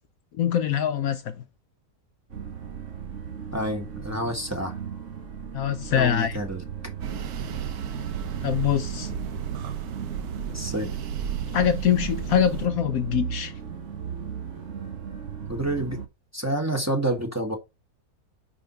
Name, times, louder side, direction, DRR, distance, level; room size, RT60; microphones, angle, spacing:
voice 1, 0.4-1.4 5.5-6.4 8.4-9.1 11.5-13.5, left 9 dB, 70° left, 1.1 m, -24 dB
sound 1, 2.3-16.1, right 7 dB, 50° right, 1.5 m, -36 dB
voice 2, 3.5-4.8 6.0-6.6 10.5-10.9 15.5-16.0 16.3-17.6, right 1 dB, 10° right, 1.5 m, -28 dB
sound 2, 7.0-12.7, right 8 dB, 75° right, 1.3 m, -33 dB
5.2 x 5.0 x 4.3 m
omnidirectional pair, 1.7 m